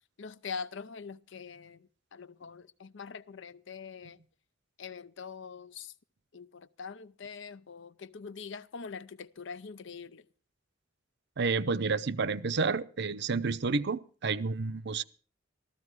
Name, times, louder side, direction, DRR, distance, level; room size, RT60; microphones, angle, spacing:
voice 1, 0.2-4.2 4.8-5.9 6.3-10.3, left 5 dB, 65° left, 0.6 m, -43 dB
voice 2, 11.4-15.0, right 4 dB, 60° right, 0.7 m, -30 dB
14.5 x 14.0 x 4.7 m
head